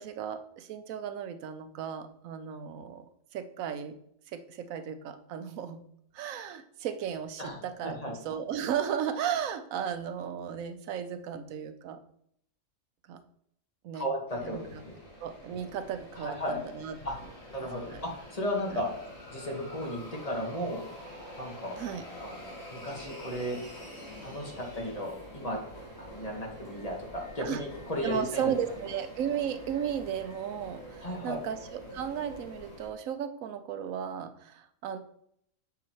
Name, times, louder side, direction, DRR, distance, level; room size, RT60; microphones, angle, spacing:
voice 1, 0.0-3.1 3.3-4.0 4.3-5.8 6.1-12.0 13.1-13.2 13.8-14.1 14.4-14.8 15.2-17.0 17.9-18.1 18.7-18.8 21.8-22.0 27.4-27.6 28.0-35.0, right 8 dB, 90° right, 10 dB, 1.1 m, -35 dB
voice 2, 7.8-8.1 13.9-14.6 14.8-15.0 16.1-16.6 17.0-17.2 17.5-18.9 19.3-20.8 21.4-21.8 22.2-23.6 24.2-25.6 26.0-28.5 31.0-31.4, equal, 30° left, -1 dB, 1.6 m, -35 dB
sound 1, 14.3-32.9, equal, 55° left, 2.1 m, -46 dB
7.2 x 6.9 x 3.0 m, 0.70 s
omnidirectional pair, 1.4 m